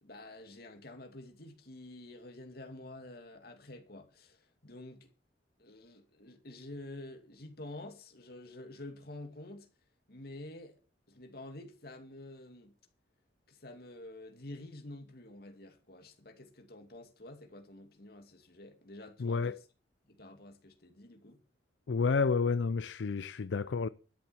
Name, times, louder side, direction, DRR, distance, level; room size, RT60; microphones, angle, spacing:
voice 1, 0.0-5.1 5.6-9.7 10.1-10.8 11.1-12.7 13.5-19.5 20.1-21.4, left 1 dB, 60° left, 2.4 m, -49 dB
voice 2, 19.2-19.6 21.9-23.9, left 4 dB, 80° left, 0.5 m, -30 dB
12.5 x 7.5 x 7.0 m
head